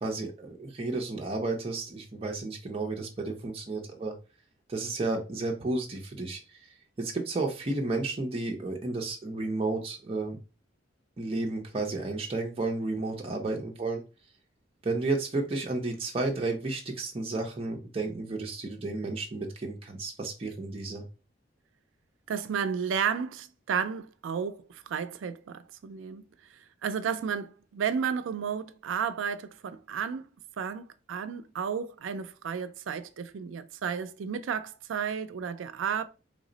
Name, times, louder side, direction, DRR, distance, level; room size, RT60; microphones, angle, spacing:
voice 1, 0.0-4.1 4.7-10.4 11.2-14.0 14.8-21.0, right 2 dB, 30° right, 0.5 m, -32 dB
voice 2, 22.3-26.3 26.8-30.2 30.6-36.0, right 7 dB, 85° right, 0.4 m, -32 dB
3.3 x 2.0 x 3.8 m
head